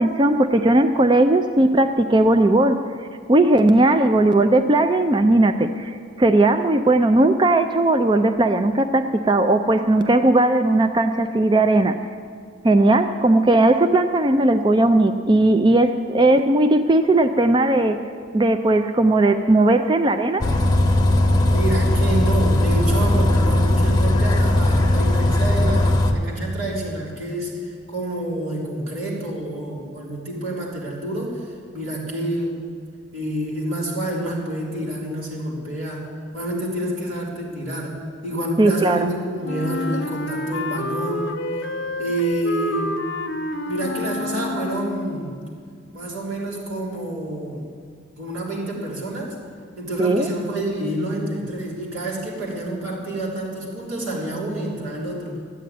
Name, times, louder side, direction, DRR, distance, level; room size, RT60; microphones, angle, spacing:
voice 1, 0.0-2.8 3.3-12.0 12.6-18.0 18.3-20.5 38.6-39.1 50.0-50.3, right 2 dB, 25° right, 8 dB, 0.4 m, -17 dB
Bus, 20.4-26.1, left 1 dB, 20° left, 0.9 m, -18 dB
voice 2, 21.5-31.5 31.7-32.6 33.1-36.1 36.3-38.0 38.2-41.4 42.0-42.9 43.7-45.4 45.9-47.6 48.2-49.4 49.8-55.4, right 1 dB, 85° right, -4 dB, 3.5 m, -28 dB
Wind instrument woodwind instrument, 39.4-45.2, left 2 dB, 60° left, 0.8 m, -28 dB
14.0 x 8.5 x 9.3 m, 2.2 s
head